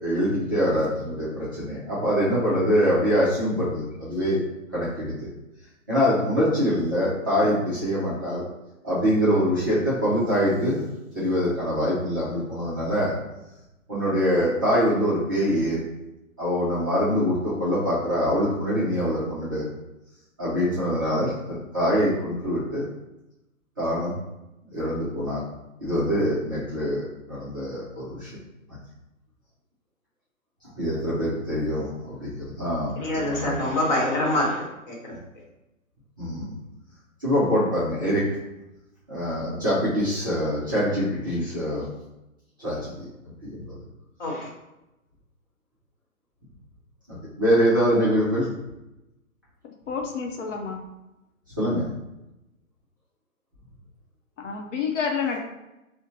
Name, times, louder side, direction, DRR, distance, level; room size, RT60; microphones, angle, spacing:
voice 1, 0.0-4.4 4.7-5.3 5.9-8.4 8.8-10.9 11.1-13.1 13.9-15.8 16.4-19.6 20.4-22.8 23.8-24.1 24.6-25.4 25.8-28.3 30.8-33.5 36.2-36.5 37.2-38.3 39.1-41.8 42.6-42.9 43.4-43.8 47.4-48.5 51.6-51.9, equal, 15° right, -11 dB, 0.4 m, -24 dB
voice 2, 33.0-35.1 44.2-44.5, left 1 dB, 35° left, -2 dB, 1.0 m, -25 dB
voice 3, 49.6-50.8 54.4-55.4, left 6 dB, 60° left, 2 dB, 0.7 m, -29 dB
4.0 x 2.1 x 2.7 m, 0.96 s
hypercardioid pair, 135°, 41 cm